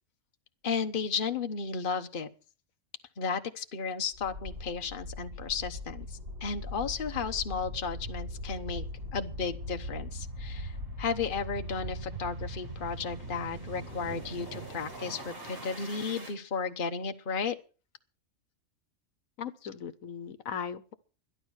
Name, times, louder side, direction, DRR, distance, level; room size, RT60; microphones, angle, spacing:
voice 1, 0.6-2.3 3.2-8.8 9.1-17.6, left 5 dB, 40° left, 7 dB, 1.2 m, -34 dB
sound 1, 4.1-16.3, equal, 40° right, 5.5 m, -40 dB
voice 2, 19.4-20.9, left 7 dB, 75° left, 11 dB, 1.3 m, -38 dB
12.0 x 11.5 x 6.3 m, 0.36 s
omnidirectional pair, 1.4 m